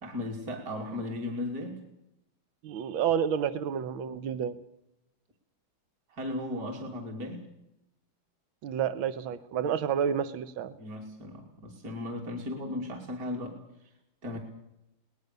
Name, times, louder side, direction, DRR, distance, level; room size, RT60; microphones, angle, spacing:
voice 1, 0.0-1.8 6.1-7.5 10.8-13.6 14.2-14.4, left 1 dB, 45° right, 1 dB, 3.5 m, -36 dB
voice 2, 2.6-4.6 8.6-10.8, right 8 dB, 80° right, 12 dB, 1.8 m, -30 dB
21.5 x 20.0 x 6.8 m, 0.84 s
omnidirectional pair, 2.2 m